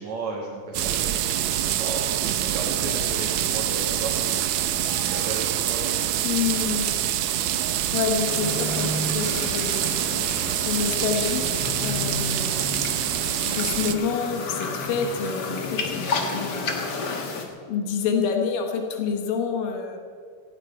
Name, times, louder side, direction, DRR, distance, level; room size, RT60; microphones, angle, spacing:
voice 1, 0.0-6.3 6.9-7.1, right 3 dB, 55° right, -4 dB, 3.2 m, -35 dB
sound 1, 0.7-13.9, right 11 dB, 75° right, 1.7 m, -26 dB
voice 2, 6.2-7.0 7.9-9.8 10.6-11.5 11.8-12.8 13.4-16.8 17.7-20.0, left 6 dB, 85° left, 3 dB, 3.1 m, -28 dB
sound 2, 8.3-17.4, left 3 dB, 45° left, 1.3 m, -31 dB
16.5 x 16.0 x 4.5 m, 2.2 s
omnidirectional pair, 3.9 m